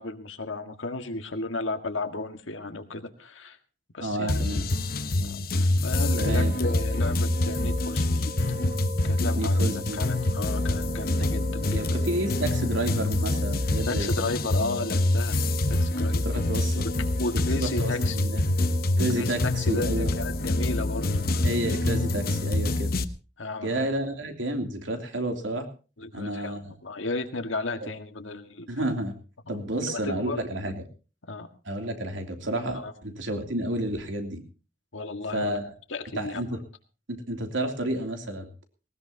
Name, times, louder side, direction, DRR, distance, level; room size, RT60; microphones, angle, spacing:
voice 1, 0.0-3.6 3.9-4.6 5.2-8.3 9.0-11.9 13.9-15.4 15.7-16.2 17.2-18.2 19.2-21.5 23.4-23.9 26.0-28.7 29.5-30.4 31.2-31.5 32.7-32.9 34.9-35.6 35.9-36.4, left 2 dB, 90° left, 7 dB, 1.8 m, -34 dB
voice 2, 4.0-4.6 6.2-6.6 9.3-10.0 11.7-14.2 16.2-16.9 17.3-18.4 19.0-20.1 21.4-22.9 23.6-25.7 26.1-26.7 27.8-27.9 28.7-29.2 29.5-30.8 31.6-34.4 35.3-35.7 36.1-36.6 37.1-38.5, right 1 dB, 85° right, 5 dB, 3.0 m, -30 dB
sound 1, 4.3-23.0, left 2 dB, 50° left, 0.9 m, -26 dB
sound 2, 5.9-22.5, right 1 dB, 40° right, 5.8 m, -41 dB
19.5 x 18.5 x 2.8 m, 0.34 s
head